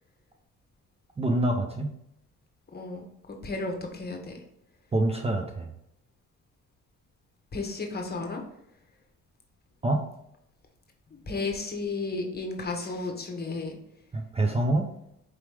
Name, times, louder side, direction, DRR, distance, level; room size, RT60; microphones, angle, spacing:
voice 1, 1.2-1.9 4.9-5.7 9.8-10.1 14.1-14.9, right 1 dB, 20° right, 3 dB, 0.6 m, -26 dB
voice 2, 2.7-4.4 7.5-8.4 11.3-13.8, left 3 dB, 30° left, 3 dB, 1.1 m, -33 dB
4.8 x 2.9 x 3.4 m, 0.77 s
cardioid pair, 90°, 30 cm